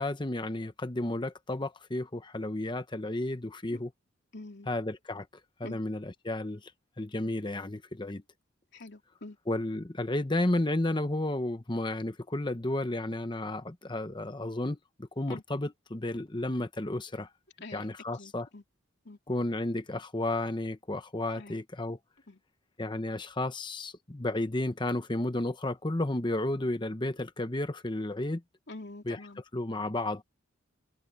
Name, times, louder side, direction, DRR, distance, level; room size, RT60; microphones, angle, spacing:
voice 1, 0.0-3.9 4.7-5.3 5.6-6.7 7.0-8.2 9.5-17.3 17.7-18.5 19.3-22.0 22.8-28.4 29.1-29.2 29.5-30.2, left 1 dB, 20° left, 0.9 m, -32 dB
voice 2, 4.3-4.7 5.6-5.8 8.7-9.4 15.3-15.4 17.6-17.9 18.1-18.6 19.0-19.2 21.3-21.6 22.3-22.4 28.7-29.4, left 2 dB, 55° left, 3.3 m, -45 dB
head